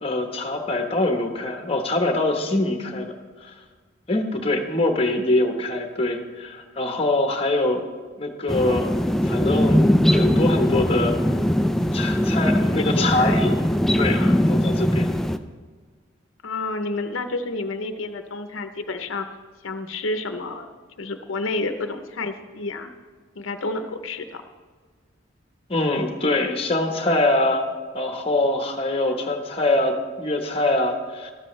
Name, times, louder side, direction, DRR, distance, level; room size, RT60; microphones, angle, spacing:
voice 1, 0.0-3.1 3.4-3.5 4.1-7.8 8.2-8.9 9.2-11.2 11.9-13.6 14.0-15.1 25.7-27.7 27.9-31.3, left 2 dB, 30° left, 4 dB, 1.1 m, -24 dB
sound 1, 8.5-15.4, equal, ahead, 0.3 m, -20 dB
voice 2, 12.8-13.5 14.1-14.4 16.4-19.3 19.6-20.7 21.0-22.9 23.3-24.4, left 3 dB, 90° left, 7 dB, 0.7 m, -30 dB
13.5 x 12.5 x 3.2 m, 1.5 s
head